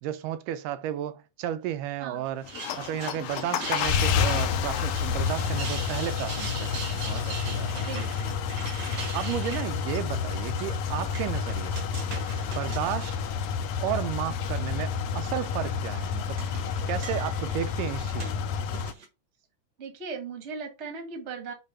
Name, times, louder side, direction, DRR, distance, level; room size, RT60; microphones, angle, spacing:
voice 1, 0.0-2.5 2.7-7.8 9.1-11.9 12.5-13.2 13.8-16.4 16.9-18.4, right 12 dB, 80° right, 2.1 m, -33 dB
sound 1, 2.2-14.0 14.4-15.0 15.8-19.1, right 4 dB, 55° right, 1.3 m, -42 dB
sound 2, 2.5-18.9, left 6 dB, 80° left, 1.5 m, -29 dB
voice 2, 7.8-8.4 19.8-21.5, right 5 dB, 35° right, 1.2 m, -38 dB
6.9 x 3.0 x 5.5 m
omnidirectional pair, 3.9 m